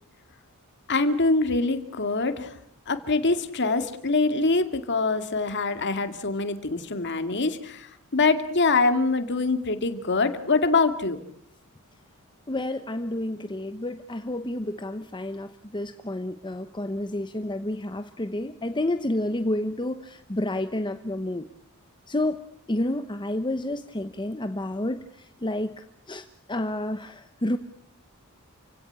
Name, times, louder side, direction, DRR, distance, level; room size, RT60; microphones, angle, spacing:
voice 1, 0.9-2.5 2.9-7.9 8.1-11.2, left 3 dB, 55° left, 9 dB, 2.2 m, -24 dB
voice 2, 12.5-21.4 22.1-22.4 22.7-27.6, left 1 dB, 20° left, 9 dB, 0.9 m, -30 dB
28.5 x 17.0 x 8.7 m, 0.73 s
head